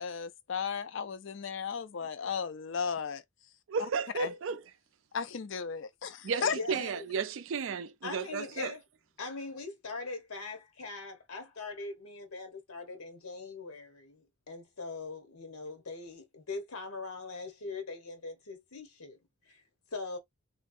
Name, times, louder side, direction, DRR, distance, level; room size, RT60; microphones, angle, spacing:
voice 1, 0.0-3.2 4.2-4.3 5.1-6.6, left 6 dB, 55° left, 0.4 m, -35 dB
voice 2, 3.7-4.6 6.2-8.7, right 5 dB, 60° right, 0.4 m, -33 dB
voice 3, 6.4-7.0 8.0-8.8 9.2-19.2 19.5-19.6 19.9-20.2, left 3 dB, 80° left, 1.1 m, -41 dB
3.4 x 3.1 x 2.6 m
head